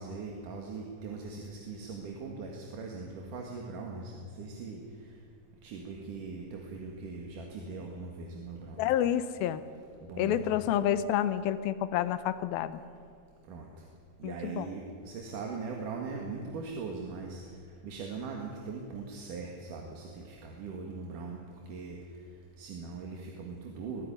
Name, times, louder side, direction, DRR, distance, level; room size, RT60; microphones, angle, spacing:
voice 1, 0.0-4.8 5.6-8.9 10.0-10.5 13.5-13.7 14.2-17.4 17.8-21.4 21.7-22.0 22.6-24.1, right 4 dB, 60° right, 1 dB, 3.1 m, -40 dB
voice 2, 8.8-9.6 10.2-12.8 14.2-14.7, left 11 dB, 80° left, 13 dB, 2.5 m, -29 dB
22.0 x 15.0 x 10.0 m, 2.2 s
omnidirectional pair, 4.7 m